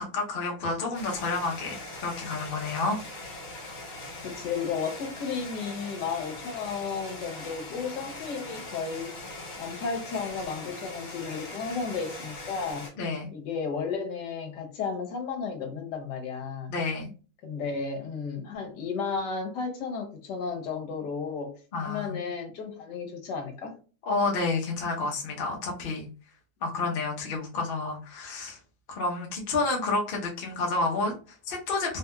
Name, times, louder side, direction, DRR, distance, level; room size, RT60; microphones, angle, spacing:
voice 1, 0.0-3.0 13.0-13.3 16.7-17.1 21.7-22.2 24.1-26.1 26.6-28.6 28.9-32.0, left 3 dB, 45° left, 0.7 m, -30 dB
sound 1, 0.9-12.9, left 2 dB, 65° left, 1.5 m, -41 dB
voice 2, 4.2-9.1 9.6-12.9 13.3-16.7 17.4-21.5 21.8-23.7, left 5 dB, 80° left, 1.3 m, -33 dB
3.3 x 2.8 x 2.2 m
omnidirectional pair, 1.8 m